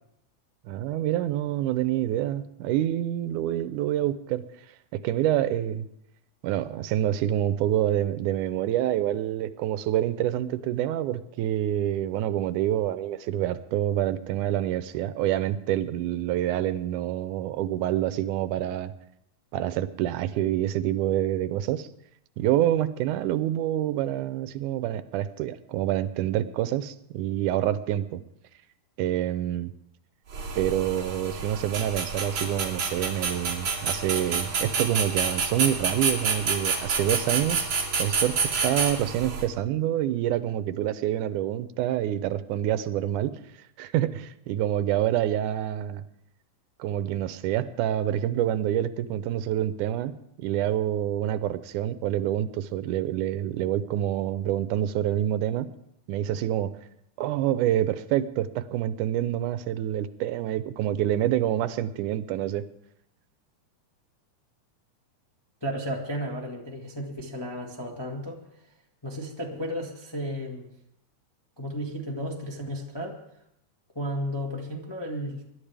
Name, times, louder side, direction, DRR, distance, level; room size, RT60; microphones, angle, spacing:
voice 1, 0.7-4.4 4.9-5.9 6.4-18.9 19.5-21.9 22.4-28.2 29.0-29.7 30.6-37.7 38.0-43.4 43.8-46.0 46.8-55.7 56.1-56.7 57.2-62.7, right 12 dB, 85° right, 13 dB, 2.2 m, -27 dB
sound 1, 30.3-39.5, right 5 dB, 40° right, 3.1 m, -28 dB
voice 2, 65.6-68.4 69.0-70.7 71.6-73.2 73.9-75.4, equal, 20° left, -1 dB, 0.7 m, -33 dB
25.0 x 11.5 x 3.4 m, 0.77 s
omnidirectional pair, 3.5 m